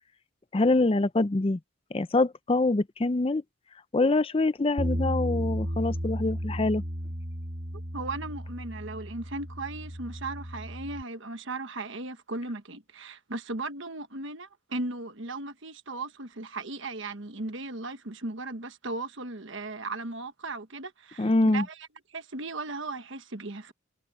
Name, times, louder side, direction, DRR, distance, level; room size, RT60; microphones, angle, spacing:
voice 1, 0.5-1.6 1.9-3.4 3.9-6.8 21.2-21.7, left 2 dB, 25° left, 0.4 m, -25 dB
Bass guitar, 4.8-11.0, equal, 45° right, 2.6 m, -34 dB
voice 2, 7.9-21.9 22.1-23.7, right 2 dB, 60° right, 1.4 m, -37 dB
head